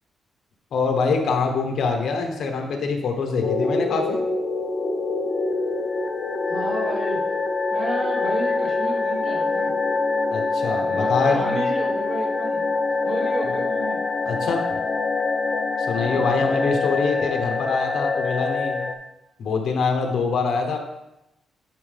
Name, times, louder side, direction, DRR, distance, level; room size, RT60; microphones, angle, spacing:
voice 1, 0.7-4.2 10.3-11.6 14.3-14.6 15.8-18.8 19.4-20.8, left 4 dB, 65° left, 3 dB, 1.2 m, -24 dB
sound 1, 3.4-18.9, left 3 dB, 40° left, 0.8 m, -25 dB
voice 2, 6.5-7.2 7.7-9.7 10.8-12.7 13.0-14.0 16.0-16.4, right 2 dB, 40° right, -1 dB, 1.8 m, -32 dB
sound 2, 9.2-16.7, left 2 dB, 5° left, 1.2 m, -36 dB
11.0 x 4.8 x 3.5 m, 0.91 s
cardioid pair, 155°, 0 cm